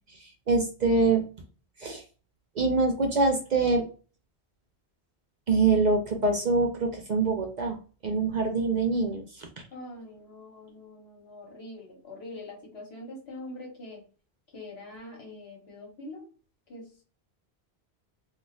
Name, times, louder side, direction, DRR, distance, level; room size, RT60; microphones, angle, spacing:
voice 1, 0.2-1.2 1.8-2.0 2.6-3.9 5.5-7.8 8.0-9.5, right 3 dB, 55° right, 3 dB, 0.6 m, -25 dB
voice 2, 9.7-14.1 14.5-16.3 16.7-17.0, left 1 dB, 70° left, 1 dB, 1.4 m, -44 dB
2.4 x 2.4 x 3.9 m, 0.38 s
omnidirectional pair, 1.1 m